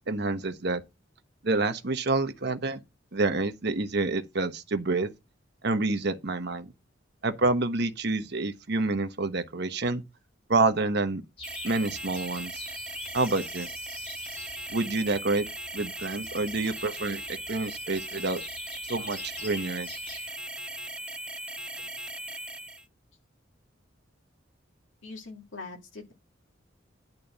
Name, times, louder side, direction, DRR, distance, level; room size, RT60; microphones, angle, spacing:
voice 1, 0.1-0.8 1.4-2.8 3.1-5.1 5.6-6.7 7.2-10.0 10.5-11.2 11.6-12.5 13.1-13.7 14.7-15.5 15.7-17.2 17.5-18.4 18.9-19.9, right 3 dB, 60° right, 1.1 m, -28 dB
sound 1, 11.4-20.3, left 3 dB, 30° left, 2.2 m, -47 dB
sound 2, 11.4-22.8, right 1 dB, 5° right, 0.5 m, -38 dB
voice 2, 25.0-26.1, left 3 dB, 80° left, 2.1 m, -42 dB
10.5 x 4.2 x 6.7 m
head